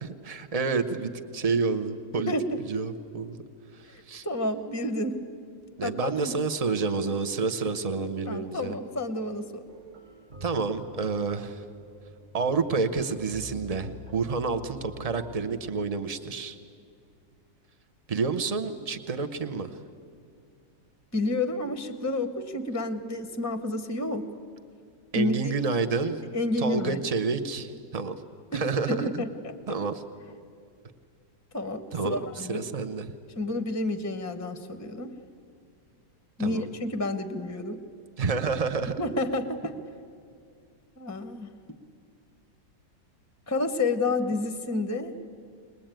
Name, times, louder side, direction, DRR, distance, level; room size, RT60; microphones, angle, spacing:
voice 1, 0.0-2.3 2.7-3.4 3.7-4.2 5.8-8.7 10.4-11.6 12.3-16.6 18.1-19.7 25.1-26.2 26.6-28.2 28.5-29.2 29.7-30.0 31.9-33.1 36.4-36.7 38.2-38.9, right 4 dB, 70° right, 9 dB, 0.3 m, -29 dB
voice 2, 2.3-2.6 4.2-5.2 5.8-6.3 8.3-9.6 21.1-24.3 25.1-25.5 26.3-27.0 28.5-29.5 31.5-32.6 33.3-35.1 36.4-37.8 39.0-39.7 41.0-41.5 43.5-45.1, left 2 dB, 15° left, 8 dB, 0.5 m, -30 dB
sound 1, 9.7-15.4, left 1 dB, 30° right, 0.9 m, -46 dB
21.5 x 20.5 x 9.0 m, 2.3 s
omnidirectional pair, 2.0 m